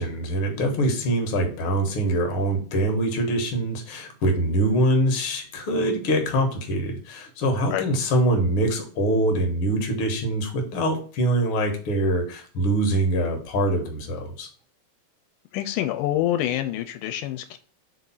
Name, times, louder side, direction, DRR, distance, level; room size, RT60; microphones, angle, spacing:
voice 1, 0.0-14.5, right 1 dB, 55° left, 4 dB, 1.7 m, -24 dB
voice 2, 15.5-17.6, left 13 dB, 85° left, 9 dB, 2.1 m, -26 dB
4.6 x 3.9 x 5.5 m, 0.42 s
omnidirectional pair, 3.7 m